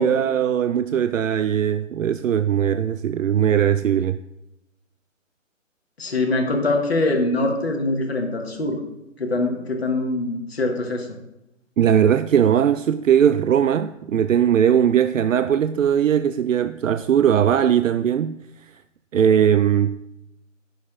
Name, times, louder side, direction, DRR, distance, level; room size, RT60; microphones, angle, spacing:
voice 1, 0.0-4.2 11.8-18.4 19.1-20.0, right 9 dB, 80° right, 0.5 m, -19 dB
voice 2, 6.0-8.8 9.2-11.1, left 2 dB, 50° left, 1.7 m, -23 dB
19.0 x 6.6 x 2.5 m
hypercardioid pair, 170°, 39 cm